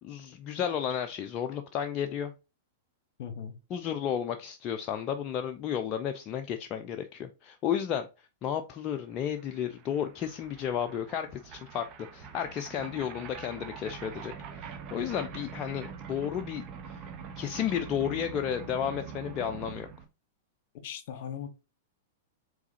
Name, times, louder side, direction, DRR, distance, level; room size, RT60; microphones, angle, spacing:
voice 1, 0.0-2.3 3.7-8.1 8.4-17.1 17.4-19.9, left 9 dB, 35° left, 0.4 m, -33 dB
voice 2, 3.2-3.6 20.8-21.5, left 8 dB, 55° left, 0.9 m, -38 dB
sound 1, 8.9-9.0 9.2-20.0, right 6 dB, 40° right, 0.7 m, -44 dB
4.7 x 3.8 x 2.7 m
figure-of-eight pair, 100°, 0 cm